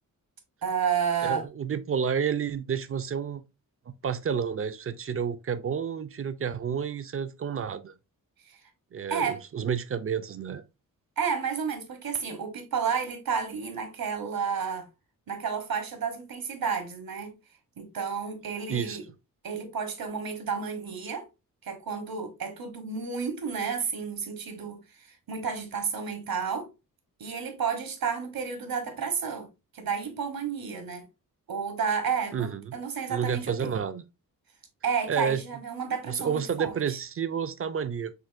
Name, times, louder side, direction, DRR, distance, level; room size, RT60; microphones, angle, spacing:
voice 1, 0.6-1.5 8.5-8.6 9.1-9.4 11.2-14.9 15.3-17.3 17.8-19.1 19.4-21.3 21.6-26.7 27.2-29.5 29.7-31.1 31.5-33.8 34.8-36.7, right 6 dB, 80° right, 1.2 m, -31 dB
voice 2, 1.2-3.4 4.0-7.9 8.9-10.6 18.7-19.0 32.3-32.7 33.1-34.0 35.1-35.4 36.0-38.1, right 7 dB, 40° right, 0.4 m, -30 dB
6.2 x 2.5 x 2.5 m
wide cardioid pair, 135°, 35 cm